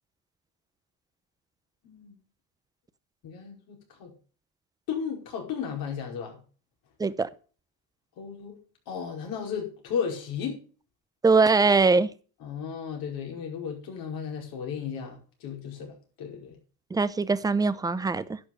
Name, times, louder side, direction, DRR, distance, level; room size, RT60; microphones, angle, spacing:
voice 1, 1.8-2.2 3.2-4.1 4.9-6.4 8.2-8.6 8.9-10.6 12.4-16.6, left 7 dB, 65° left, 1 dB, 5.0 m, -34 dB
voice 2, 11.2-12.1 16.9-18.4, right 4 dB, 10° right, 15 dB, 0.6 m, -22 dB
11.0 x 6.3 x 6.8 m, 0.38 s
cardioid pair, 120°, 38 cm